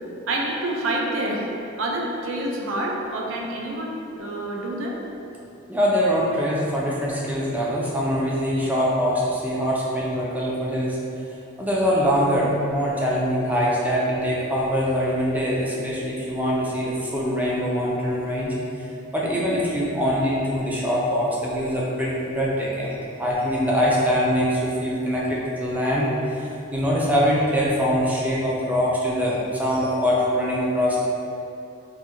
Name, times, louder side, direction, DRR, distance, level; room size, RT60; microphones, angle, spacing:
voice 1, 0.3-1.5 1.8-5.0, right 1 dB, 70° right, -1 dB, 0.5 m, -27 dB
voice 2, 5.7-11.2 11.6-18.9 19.1-22.9 23.2-31.0, equal, 10° right, -5 dB, 0.4 m, -23 dB
2.6 x 2.4 x 4.2 m, 2.8 s
head